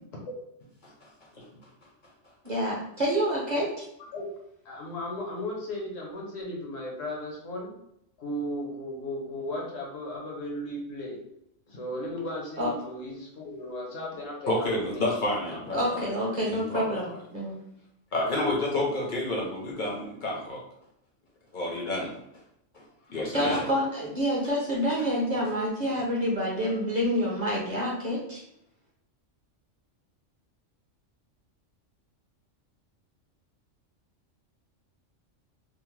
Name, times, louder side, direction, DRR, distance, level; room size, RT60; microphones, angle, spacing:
voice 1, 2.4-3.8 12.6-12.7 15.7-17.6 23.3-28.4, equal, 40° right, -4 dB, 0.7 m, -28 dB
voice 2, 4.6-7.7 8.2-11.2 11.7-15.3, left 1 dB, 80° left, -2 dB, 1.3 m, -36 dB
voice 3, 14.5-16.0 16.4-17.0 18.1-20.6 21.5-22.1 22.7-22.8 23.1-23.7, left 1 dB, 50° left, -3 dB, 0.7 m, -30 dB
2.7 x 2.1 x 3.1 m, 0.77 s
omnidirectional pair, 1.3 m